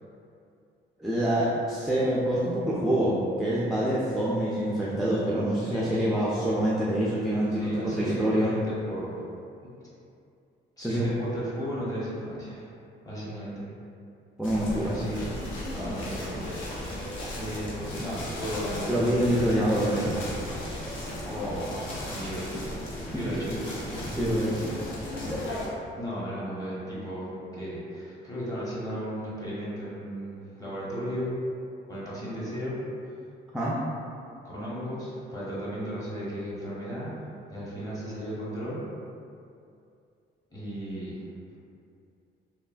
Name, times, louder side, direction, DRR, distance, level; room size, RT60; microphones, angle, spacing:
voice 1, 1.0-8.5 10.8-11.1 14.4-15.0 18.9-20.2 23.1-23.3 24.2-24.7 33.5-33.8, right 1 dB, ahead, -7 dB, 0.3 m, -26 dB
voice 2, 5.6-6.5 7.5-9.2 10.8-12.7 13.0-13.6 14.7-15.5 15.7-16.6 17.3-19.3 21.2-23.6 25.9-31.3 31.9-32.8 34.4-37.1 37.5-38.8 40.5-41.2, equal, 20° left, -8 dB, 1.0 m, -35 dB
sound 1, 14.4-25.7, left 1 dB, 75° left, 0.6 m, -35 dB
3.0 x 2.2 x 2.4 m, 2.5 s
cardioid pair, 90°, 20 cm